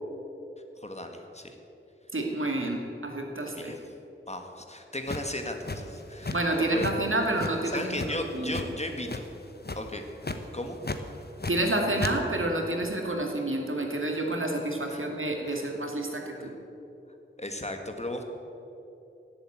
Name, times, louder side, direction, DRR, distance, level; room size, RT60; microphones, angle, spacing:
voice 1, 0.8-1.6 3.5-3.8 4.3-7.0 7.7-9.3 9.7-10.0 10.5-10.8 14.9-15.1 15.4-15.6 16.4-16.6 17.4-18.2, left 1 dB, 30° left, 4 dB, 1.8 m, -36 dB
voice 2, 2.1-3.7 6.3-8.7 11.5-16.5, right 1 dB, 80° right, 1 dB, 2.2 m, -29 dB
sound 1, 5.1-6.5 6.8-7.0 7.4-8.7 9.0-9.4 9.6-9.9 10.2-10.4 10.8-11.7 12.0-12.1, left 3 dB, 50° left, 1.1 m, -34 dB
17.5 x 7.9 x 8.9 m, 2.9 s
wide cardioid pair, 45°, 21 cm